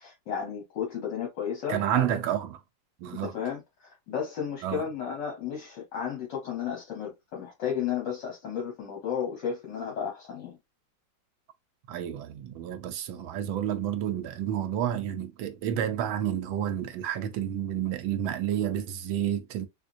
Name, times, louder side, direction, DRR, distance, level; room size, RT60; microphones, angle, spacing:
voice 1, 0.0-2.1 3.2-3.6 4.1-10.6, left 8 dB, 60° left, 1.6 m, -33 dB
voice 2, 1.7-2.6 3.0-3.4 4.6-4.8 11.9-19.7, right 10 dB, 80° right, 1.4 m, -30 dB
3.6 x 3.2 x 2.5 m
omnidirectional pair, 2.2 m